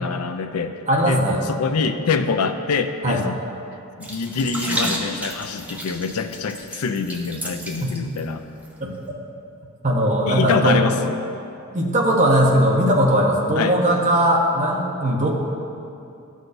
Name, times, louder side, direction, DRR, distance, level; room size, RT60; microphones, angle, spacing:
voice 1, 0.0-3.4 4.0-8.4 10.3-11.2 13.6-13.8, left 5 dB, 90° left, 8 dB, 0.5 m, -25 dB
voice 2, 0.9-1.4 3.0-3.2 7.8-7.9 8.8-8.9 9.8-10.9 11.7-15.3, equal, 35° right, -1 dB, 0.9 m, -19 dB
sound 1, 4.0-8.2 8.5-8.7, right 1 dB, 5° right, 0.6 m, -31 dB
12.0 x 6.3 x 2.6 m, 2.6 s
head